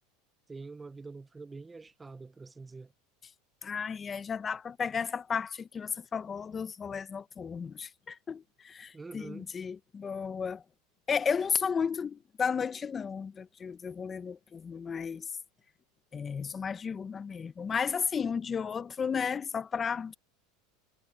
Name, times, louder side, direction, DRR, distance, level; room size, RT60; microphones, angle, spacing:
voice 1, 0.5-2.9 8.9-9.5, right 3 dB, 15° right, 0.8 m, -45 dB
voice 2, 3.6-10.6 11.1-15.3 16.1-20.2, left 6 dB, 25° left, 1.0 m, -33 dB
supercardioid pair, 115°, 0 cm